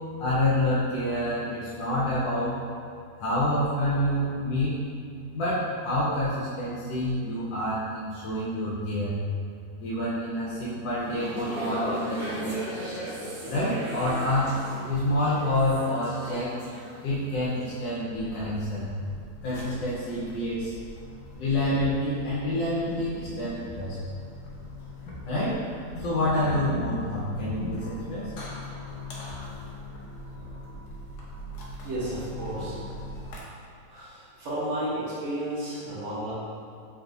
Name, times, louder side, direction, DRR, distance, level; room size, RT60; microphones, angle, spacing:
voice 1, 0.2-2.6 3.2-4.8 5.3-9.2 9.8-12.6 13.5-14.6 14.9-16.6 17.0-18.9 19.4-20.7 21.4-24.0 25.3-25.6 25.9-28.3, left 1 dB, 90° left, -9 dB, 1.4 m, -27 dB
sound 1, 11.0-17.2 17.5-17.8, equal, 85° right, 2.0 m, -36 dB
sound 2, 18.1-33.4, left 1 dB, 70° left, 1.2 m, -42 dB
voice 2, 31.8-32.8 33.1-33.2 33.9-36.3, right 1 dB, 50° right, -8 dB, 1.0 m, -32 dB
3.8 x 3.5 x 2.6 m, 2.3 s
omnidirectional pair, 1.9 m